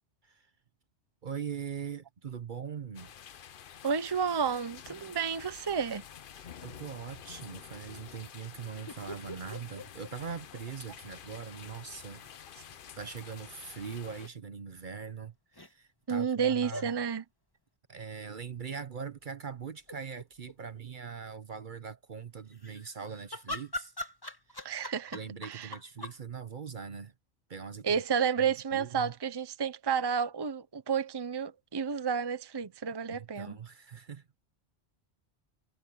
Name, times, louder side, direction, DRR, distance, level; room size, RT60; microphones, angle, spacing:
voice 1, 1.2-3.1 6.4-12.6 13.0-16.9 17.9-23.9 24.5-24.7 25.1-27.1 27.5-28.0 28.4-29.1 33.1-34.4, right 6 dB, 50° right, 0.9 m, -42 dB
sound 1, 2.9-14.3, left 8 dB, 55° left, 0.8 m, -49 dB
voice 2, 3.8-6.0 16.1-17.2 24.6-25.2 25.4-25.7 27.8-33.6, right 6 dB, 25° right, 0.7 m, -31 dB
sound 2, 8.9-11.1 11.4-11.5 13.6-14.3 15.5-15.7 16.7-16.9 18.7-19.1 19.6-19.7 19.8-20.6 22.5-26.2, left 1 dB, 20° left, 2.1 m, -42 dB
omnidirectional pair, 1.2 m